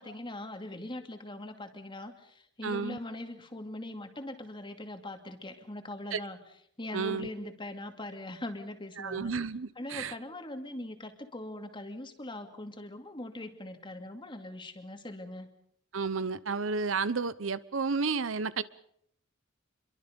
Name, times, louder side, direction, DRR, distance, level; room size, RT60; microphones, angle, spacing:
voice 1, 0.0-6.4 6.8-9.3 9.8-15.5, left 1 dB, 25° left, 6 dB, 2.5 m, -41 dB
voice 2, 2.6-3.0 6.1-6.2 6.9-7.3 9.0-10.1 15.9-18.6, right 4 dB, 80° right, 16 dB, 0.9 m, -31 dB
27.5 x 23.5 x 5.3 m, 0.70 s
head